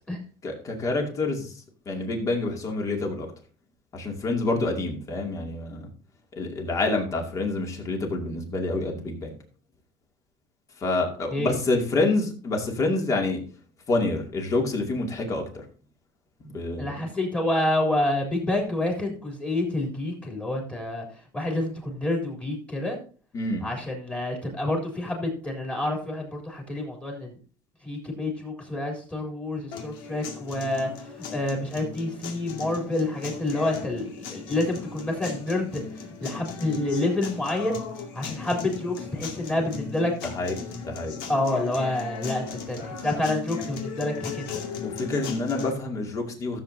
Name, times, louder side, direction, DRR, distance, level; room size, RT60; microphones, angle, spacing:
voice 1, 0.4-3.3 3.9-5.9 6.4-9.3 10.8-13.4 13.9-15.6 16.4-17.1 23.3-23.6 40.2-40.6 40.8-41.2 44.8-46.6, left 2 dB, 30° left, 2 dB, 2.4 m, -27 dB
voice 2, 16.8-21.0 21.3-23.0 23.6-27.4 27.8-35.8 36.2-37.8 38.1-40.1 41.3-44.6, left 1 dB, 10° left, 0 dB, 3.4 m, -28 dB
sound 1, 29.7-45.7, left 6 dB, 85° left, 2.1 m, -37 dB
15.0 x 7.7 x 2.7 m, 0.40 s
cardioid pair, 145°, 11 cm